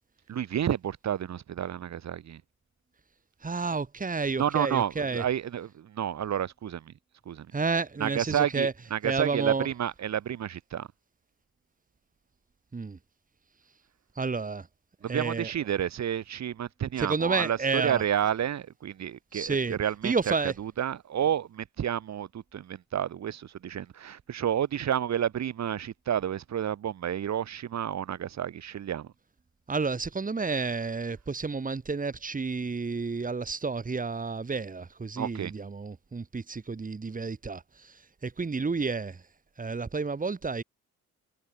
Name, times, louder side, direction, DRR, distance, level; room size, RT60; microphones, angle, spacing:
voice 1, 0.3-2.4 4.4-6.9 7.2-7.5 8.0-10.9 15.0-29.1 35.2-35.5, right 9 dB, 65° right, 6.4 m, -30 dB
voice 2, 3.4-5.2 7.5-8.7 9.0-9.7 12.7-13.0 14.1-14.7 15.1-15.5 17.0-18.0 19.3-19.8 20.0-20.5 29.7-39.2 39.6-40.6, right 4 dB, 25° right, 4.4 m, -30 dB
cardioid pair, 90°, 30 cm